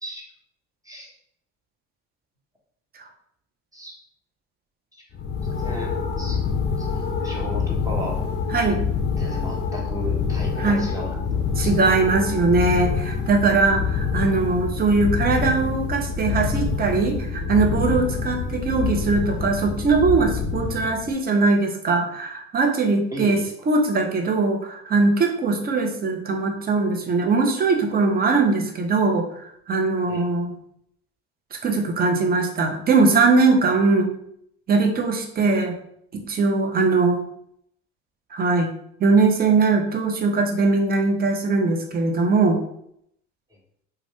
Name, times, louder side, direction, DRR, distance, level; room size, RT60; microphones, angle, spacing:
sound 1, 5.1-21.1, left 5 dB, 30° left, 0.5 m, -26 dB
voice 1, 5.4-5.9 6.2-6.4 6.8-8.2 9.2-11.7 23.1-23.5 30.1-30.3, equal, 10° right, -2 dB, 1.0 m, -35 dB
voice 2, 8.5-8.8 10.6-10.9 11.6-29.3 29.7-30.5 31.6-34.1 34.7-35.7 36.1-37.2 38.3-38.7 39.0-42.6, right 3 dB, 25° right, 3 dB, 0.6 m, -21 dB
2.4 x 2.2 x 3.5 m, 0.71 s
hypercardioid pair, 65°, 35 cm